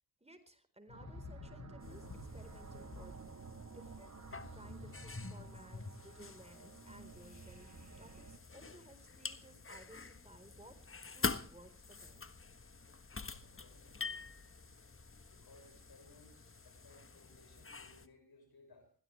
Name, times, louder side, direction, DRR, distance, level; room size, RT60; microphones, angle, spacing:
voice 1, 0.2-2.1 2.3-3.4 3.7-4.2 4.5-7.7 8.0-10.8 11.1-12.3, right 1 dB, 15° right, 9 dB, 4.2 m, -58 dB
sound 1, 0.9-8.3 8.5-8.8, left 3 dB, 50° left, 4.4 m, -52 dB
sound 2, 0.9-8.4, right 4 dB, 45° right, 1.5 m, -53 dB
sound 3, 1.8-18.1, left 4 dB, 35° left, 1.4 m, -47 dB
voice 2, 13.5-14.2 15.3-18.9, left 2 dB, 70° left, 6 dB, 6.2 m, -63 dB
22.0 x 16.0 x 3.3 m, 0.38 s
cardioid pair, 40°, 38 cm